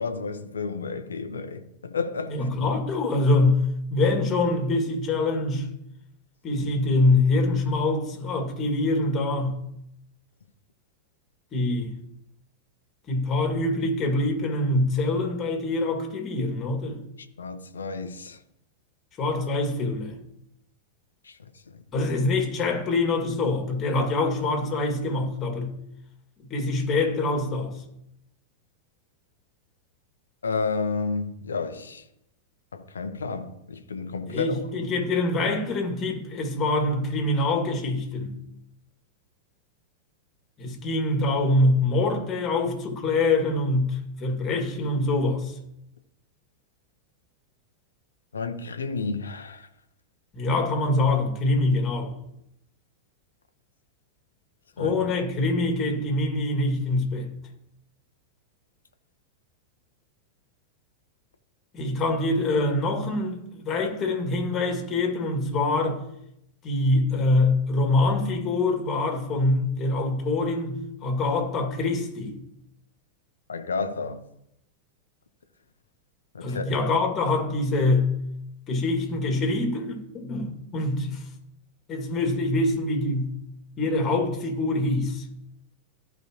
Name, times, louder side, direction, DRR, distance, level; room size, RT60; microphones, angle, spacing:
voice 1, 0.0-2.5 17.4-18.4 21.2-21.4 21.7-21.8 30.4-32.0 32.7-34.9 48.3-49.7 54.8-55.0 73.5-74.2 76.3-76.6, left 4 dB, 70° left, 0.8 m, -31 dB
voice 2, 2.3-5.7 6.4-9.6 11.5-12.0 13.1-17.0 19.2-20.2 21.9-25.7 26.5-27.8 34.3-38.4 40.6-45.6 50.3-52.2 54.8-57.3 61.7-66.0 66.6-72.4 76.4-78.2 78.7-81.2 81.9-83.3 83.8-85.3, left 2 dB, 25° left, 2.3 m, -25 dB
15.0 x 5.3 x 3.1 m
figure-of-eight pair, 90°, 0 cm